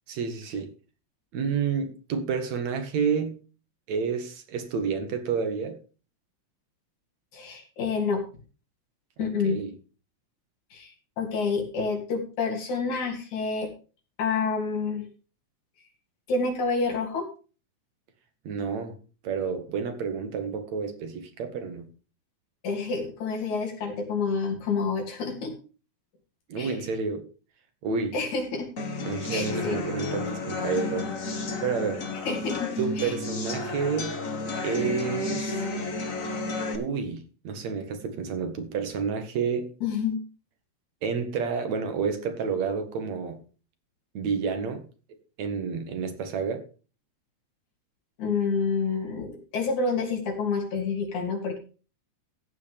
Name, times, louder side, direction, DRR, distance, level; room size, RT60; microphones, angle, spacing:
voice 1, 0.1-0.7 1.3-3.4 3.9-5.8 9.2-9.7 18.4-19.0 19.2-21.9 26.5-27.3 27.8-28.2 29.0-31.2 31.6-32.1 32.8-34.2 34.6-35.7 36.7-39.7 41.0-43.4 44.1-44.8 45.4-46.7, right 5 dB, 70° right, 3.0 m, -30 dB
voice 2, 7.3-8.2 9.2-9.6 10.7-13.7 14.2-15.1 16.3-17.3 22.6-25.5 26.6-26.8 28.1-28.7 29.3-29.8 32.3-33.2 39.8-40.2 48.2-51.6, left 4 dB, 85° left, 4.4 m, -28 dB
sound 1, 28.8-36.8, left 3 dB, 35° left, 1.6 m, -32 dB
14.5 x 9.5 x 3.5 m
omnidirectional pair, 3.3 m